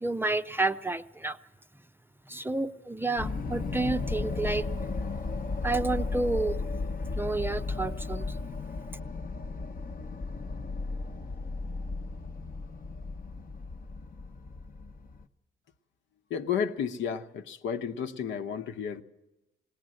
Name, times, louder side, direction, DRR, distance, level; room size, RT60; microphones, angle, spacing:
voice 1, 0.0-1.4 2.3-4.7 5.6-6.6 7.2-8.3, right 2 dB, 10° right, 9 dB, 0.6 m, -30 dB
sound 1, 3.2-15.2, left 3 dB, 45° left, 0.9 m, -35 dB
voice 2, 16.3-19.0, left 7 dB, 70° left, 7 dB, 1.1 m, -32 dB
20.0 x 18.5 x 7.7 m, 0.98 s
cardioid pair, 90°, 20 cm